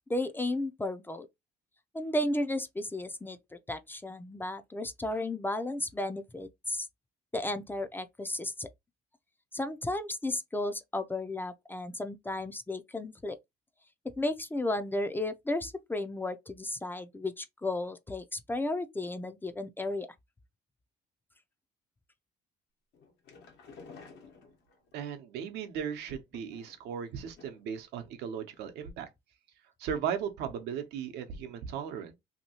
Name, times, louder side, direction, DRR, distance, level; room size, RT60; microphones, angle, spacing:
voice 1, 0.1-1.3 1.9-6.9 7.3-8.7 9.5-13.4 14.2-20.1, left 1 dB, 10° left, 0.4 m, -34 dB
sound 1, 22.9-25.0 26.0-26.9 27.4-27.8 28.1-28.2 28.5-28.6, left 4 dB, 80° left, 1.1 m, -53 dB
voice 2, 24.9-29.1 29.8-32.2, right 8 dB, 85° right, 0.7 m, -37 dB
2.8 x 2.6 x 2.8 m
cardioid pair, 110°, 17 cm